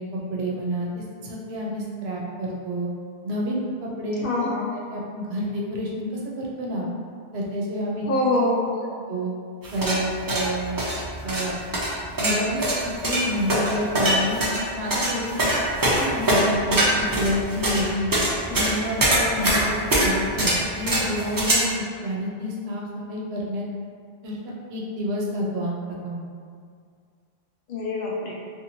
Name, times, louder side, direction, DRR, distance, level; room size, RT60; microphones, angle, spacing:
voice 1, 0.0-2.9 3.2-4.2 4.9-6.1 6.4-6.9 7.3-8.0 9.1-9.3 9.7-10.8 11.2-11.6 12.2-15.3 16.0-18.1 18.5-23.6 24.2-24.4 24.7-25.8 26.0-26.2, equal, 80° right, -3 dB, 0.8 m, -29 dB
voice 2, 4.2-4.8 8.1-8.8 27.7-28.3, left 2 dB, 65° left, -4 dB, 0.7 m, -24 dB
sound 1, 9.6-21.5, right 1 dB, 35° right, 0.4 m, -23 dB
2.6 x 2.5 x 2.8 m, 2.2 s
omnidirectional pair, 1.1 m